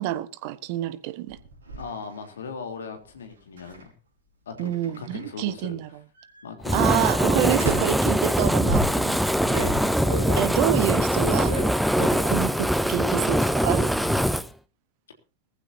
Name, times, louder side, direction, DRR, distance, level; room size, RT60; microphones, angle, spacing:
voice 1, 0.0-1.4 4.6-5.9 6.7-9.2 10.3-11.5 12.0-13.9, right 14 dB, 45° right, 1.3 m, -27 dB
sound 1, 1.3-1.8 3.6-3.8 4.6-5.4 6.1-6.4 7.6-8.1 8.7-12.4 12.8-13.3 13.6-14.2, right 2 dB, 70° right, 5.1 m, -34 dB
voice 2, 1.8-3.9 4.4-5.8 6.4-7.6, left 5 dB, 65° left, 3.4 m, -39 dB
Fire, 6.6-14.5, equal, ahead, 0.7 m, -23 dB
19.5 x 15.0 x 2.8 m
figure-of-eight pair, 90°, 0 cm